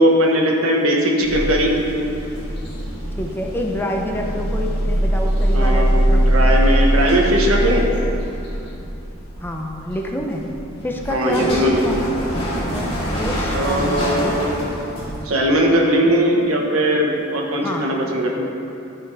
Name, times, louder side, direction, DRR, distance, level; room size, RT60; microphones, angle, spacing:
voice 1, 0.0-1.7 5.5-7.9 11.1-11.8 13.5-14.7 15.2-18.3, equal, 85° right, 0 dB, 1.4 m, -19 dB
sound 1, 1.2-15.2, equal, 25° left, 2.2 m, -22 dB
voice 2, 3.2-6.3 9.4-10.4 10.8-12.3 12.6-12.9 13.2-14.6 16.0-16.3 17.6-17.8, left 1 dB, 10° left, 1 dB, 0.7 m, -27 dB
12.0 x 6.1 x 4.8 m, 2.8 s
head